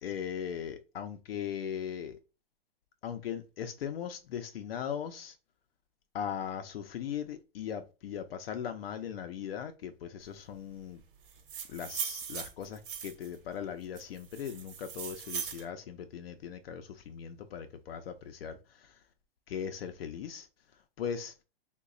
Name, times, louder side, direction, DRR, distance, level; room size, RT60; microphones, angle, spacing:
voice 1, 0.0-2.2 3.0-5.4 6.1-11.0 11.7-19.0 19.5-20.5 21.0-21.3, left 8 dB, 75° left, 0.5 m, -39 dB
sound 1, 11.3-13.3 13.9-15.6, right 8 dB, 60° right, 0.9 m, -39 dB
3.1 x 2.2 x 3.7 m
hypercardioid pair, 145°, 30 cm